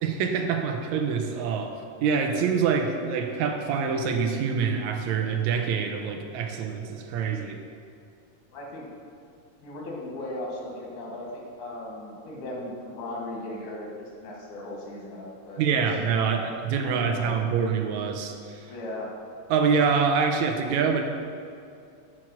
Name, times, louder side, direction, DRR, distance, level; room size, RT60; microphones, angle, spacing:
voice 1, 0.0-7.6 15.6-18.7 19.5-21.0, right 6 dB, 80° right, 5 dB, 1.9 m, -26 dB
voice 2, 8.5-8.9 9.6-15.8 16.2-16.4 16.8-17.3 18.7-19.1, left 1 dB, 85° left, -2 dB, 2.9 m, -37 dB
7.5 x 4.6 x 6.0 m, 2.5 s
omnidirectional pair, 3.3 m